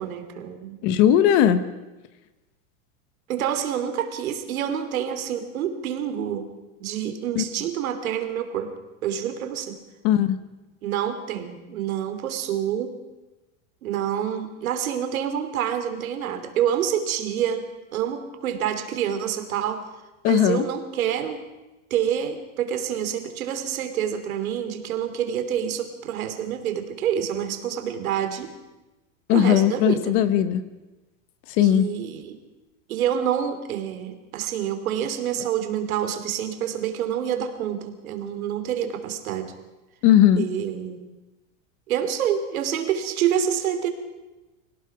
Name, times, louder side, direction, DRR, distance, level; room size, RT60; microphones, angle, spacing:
voice 1, 0.0-0.8 3.3-6.5 6.8-8.7 9.0-9.8 10.8-13.0 13.8-17.6 17.9-19.9 20.2-21.4 21.9-28.5 29.3-30.2 31.6-32.4 32.9-39.5 40.4-41.1 41.9-43.9, right 9 dB, 85° right, 8 dB, 3.2 m, -27 dB
voice 2, 0.8-1.6 7.4-7.5 10.0-10.4 20.2-20.6 29.3-30.6 31.6-31.9 40.0-40.5, left 10 dB, 30° left, 13 dB, 0.9 m, -18 dB
25.0 x 17.5 x 6.0 m, 1.1 s
supercardioid pair, 170°, 41 cm